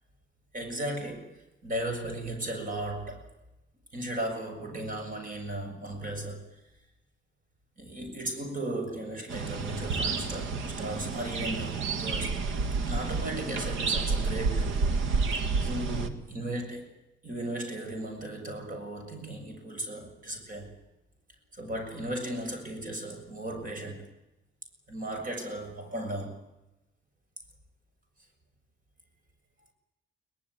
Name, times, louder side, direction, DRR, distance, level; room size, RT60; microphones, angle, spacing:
voice 1, 0.5-1.3 1.6-3.3 3.9-6.5 7.8-12.4 12.8-14.8 15.6-16.9 17.2-20.7 21.5-24.1 24.9-26.4, right 1 dB, 45° right, 4 dB, 7.2 m, -36 dB
sound 1, 9.3-16.1, right 4 dB, 85° right, 2.1 m, -30 dB
22.5 x 19.0 x 9.9 m, 0.97 s
cardioid pair, 90°, 20 cm